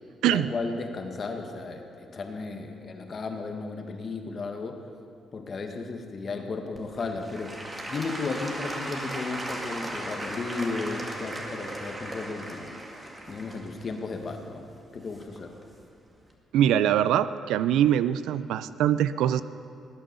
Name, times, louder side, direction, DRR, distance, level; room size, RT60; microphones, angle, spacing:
voice 1, 0.3-4.8 5.3-12.8 13.3-14.6 14.9-15.5, left 3 dB, 45° left, 4 dB, 1.7 m, -34 dB
Applause / Crowd, 6.7-15.6 16.2-16.3, right 1 dB, 20° right, 2.2 m, -37 dB
voice 2, 16.5-19.4, right 10 dB, 85° right, 15 dB, 0.4 m, -23 dB
18.5 x 8.9 x 6.9 m, 2.5 s
cardioid pair, 90°, 0 cm